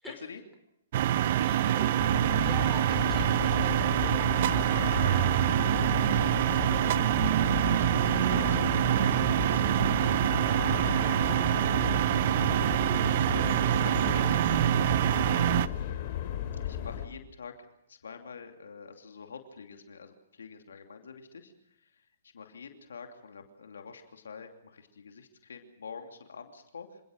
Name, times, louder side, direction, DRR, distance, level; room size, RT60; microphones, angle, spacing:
voice 1, 0.1-0.4 5.8-15.5 16.6-27.0, left 5 dB, 80° left, 5 dB, 2.7 m, -47 dB
sound 1, 0.9-15.7, right 12 dB, 50° right, 0.9 m, -25 dB
voice 2, 1.4-5.4, equal, ahead, 4 dB, 4.7 m, -46 dB
sound 2, 2.0-17.1, left 10 dB, 45° left, 3.1 m, -35 dB
27.0 x 18.0 x 6.5 m, 0.80 s
hypercardioid pair, 125°, 0 cm